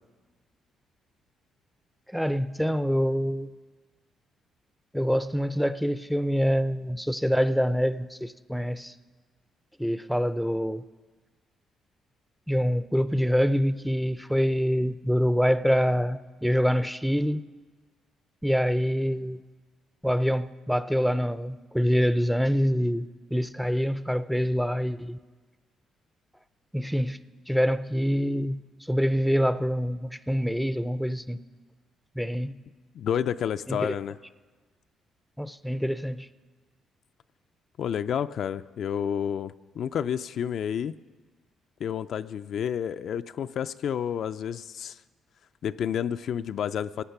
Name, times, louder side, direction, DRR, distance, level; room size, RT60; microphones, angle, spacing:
voice 1, 2.1-3.5 4.9-8.9 9.8-10.8 12.5-17.4 18.4-19.4 20.0-25.2 26.7-27.2 27.5-28.6 28.9-31.4 32.2-32.6 33.7-33.9 35.4-36.3, equal, ahead, 0.5 m, -25 dB
voice 2, 32.9-34.2 37.8-40.9 41.8-45.0 45.6-47.0, left 8 dB, 65° left, 0.3 m, -30 dB
17.0 x 9.3 x 5.8 m
cardioid pair, 90°, 0 cm